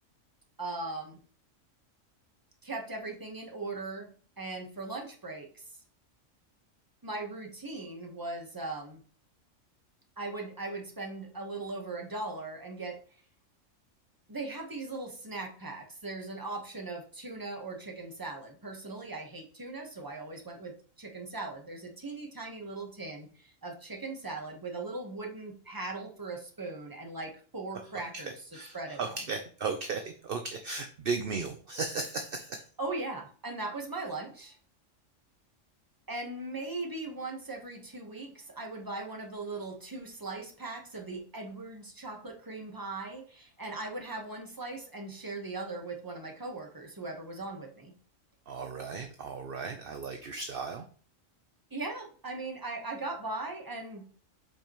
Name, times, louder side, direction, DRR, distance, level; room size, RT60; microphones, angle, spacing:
voice 1, 0.6-1.2 2.6-4.1 4.4-5.6 7.0-9.0 10.2-13.0 14.3-29.2 32.8-34.6 36.1-47.9 51.7-54.0, right 2 dB, 15° right, 2 dB, 1.3 m, -39 dB
voice 2, 28.5-32.6 48.5-50.9, right 4 dB, 50° right, 5 dB, 0.8 m, -35 dB
7.8 x 5.2 x 3.1 m, 0.42 s
omnidirectional pair, 1.3 m